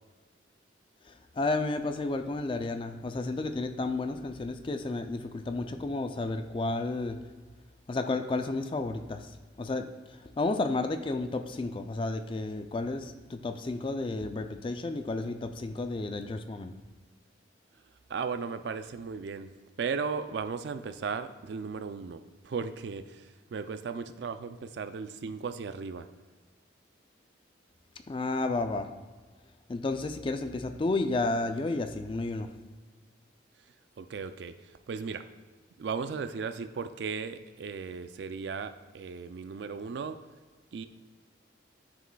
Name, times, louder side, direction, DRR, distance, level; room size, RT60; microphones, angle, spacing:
voice 1, 1.1-7.2 7.9-9.3 9.6-9.9 10.4-16.7 28.1-28.9 29.7-32.5, left 2 dB, 25° left, 8 dB, 0.3 m, -32 dB
voice 2, 18.1-19.5 19.8-26.1 34.0-35.2 35.8-40.2 40.7-40.9, right 5 dB, 60° right, 10 dB, 0.3 m, -36 dB
11.0 x 4.9 x 2.3 m, 1.4 s
head